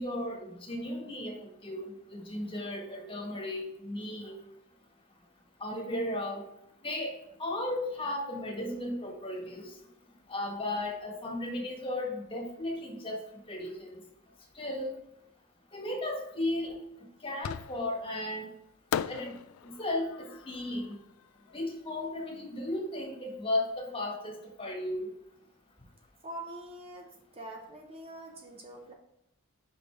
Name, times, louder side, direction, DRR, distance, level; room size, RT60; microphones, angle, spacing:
voice 1, 0.0-1.4 1.6-4.4 5.6-6.4 6.8-9.7 10.3-13.2 13.5-13.9 14.5-14.9 15.7-16.7 17.2-18.5 19.1-19.3 19.6-21.0 21.5-25.1, left 1 dB, 25° left, 0 dB, 1.5 m, -35 dB
Fireworks, 17.4-18.1 18.9-22.0, left 9 dB, 75° left, 0.3 m, -38 dB
voice 2, 26.2-28.9, right 1 dB, 30° right, 2 dB, 0.8 m, -44 dB
5.4 x 5.2 x 4.7 m, 0.81 s
head